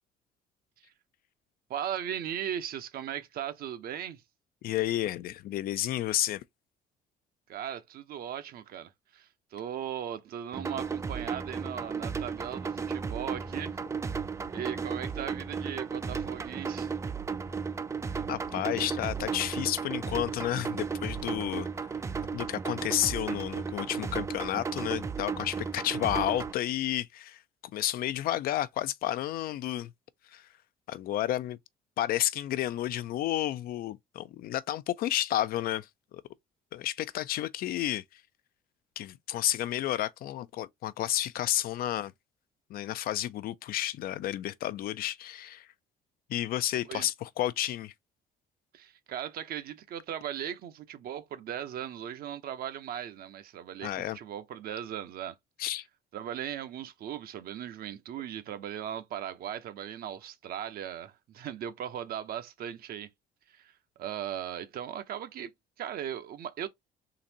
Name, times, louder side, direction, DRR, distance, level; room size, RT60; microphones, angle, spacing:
voice 1, 1.7-4.2 7.5-13.8 14.5-16.9 46.9-47.1 48.7-55.3 56.1-63.1 63.5-63.7 64.0-65.5 65.8-66.7, right 10 dB, 60° right, 0.8 m, -38 dB
voice 2, 4.6-6.4 18.3-21.9 22.3-27.4 27.7-29.9 30.3-30.5 30.9-31.6 32.0-36.2 36.7-38.2 39.0-42.1 42.7-45.7 46.3-47.9 53.8-54.2 55.6-55.8, left 13 dB, 60° left, 0.4 m, -31 dB
sound 1, 10.5-26.5, right 5 dB, 15° right, 0.3 m, -34 dB
3.9 x 2.6 x 2.8 m
cardioid pair, 110°, 17 cm